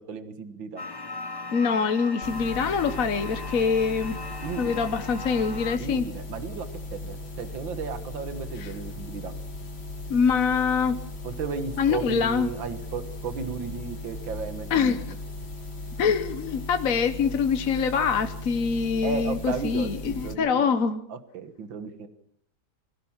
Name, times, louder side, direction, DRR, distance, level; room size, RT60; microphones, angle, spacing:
voice 1, 0.1-0.8 4.4-4.8 5.8-9.3 11.2-15.0 19.0-20.7 21.1-22.1, right 6 dB, 80° right, 10 dB, 2.2 m, -34 dB
sound 1, 0.8-5.8, left 3 dB, 25° left, 0.5 m, -38 dB
voice 2, 1.5-4.2 4.6-6.1 8.6-8.7 10.1-11.0 11.8-12.5 14.7-15.0 16.0-21.0, left 6 dB, 50° left, 8 dB, 1.3 m, -24 dB
sound 2, 2.2-20.3, left 2 dB, 90° left, 3.8 m, -37 dB
22.5 x 16.5 x 7.3 m, 0.69 s
omnidirectional pair, 2.1 m